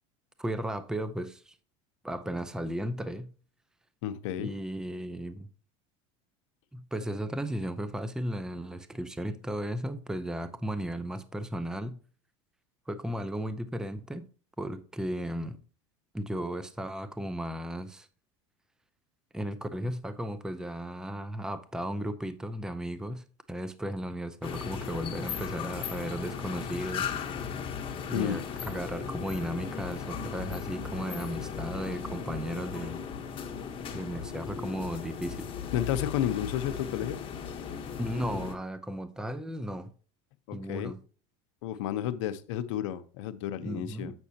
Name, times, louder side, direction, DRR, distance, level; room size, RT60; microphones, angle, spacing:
voice 1, 0.4-1.6 2.0-3.3 4.4-5.5 6.7-12.0 12.9-14.3 14.6-15.6 16.1-18.1 19.3-27.6 28.0-33.0 33.9-35.5 38.0-39.9 40.5-41.0 43.6-44.1, right 1 dB, 5° right, 0.6 m, -35 dB
voice 2, 4.0-4.5 28.1-28.4 35.7-37.2 40.5-40.9 41.6-44.1, left 11 dB, 75° left, 0.7 m, -31 dB
sound 1, 24.4-38.5, left 7 dB, 35° left, 1.1 m, -37 dB
7.8 x 6.3 x 2.8 m
supercardioid pair, 105°, 16 cm